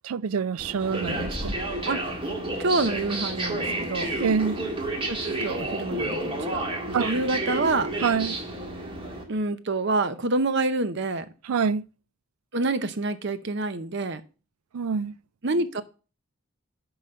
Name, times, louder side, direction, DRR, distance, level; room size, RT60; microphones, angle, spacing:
voice 1, 0.0-1.6 4.2-4.6 6.9-7.1 8.0-8.4 11.5-11.8 14.7-15.1, right 6 dB, 80° right, 0.4 m, -26 dB
sound 1, 0.6-9.2, right 1 dB, 25° right, 1.8 m, -30 dB
voice 2, 2.6-4.1 5.1-7.9 9.3-11.3 12.5-14.2 15.4-15.8, right 2 dB, 50° right, 0.7 m, -27 dB
11.0 x 4.0 x 5.5 m
head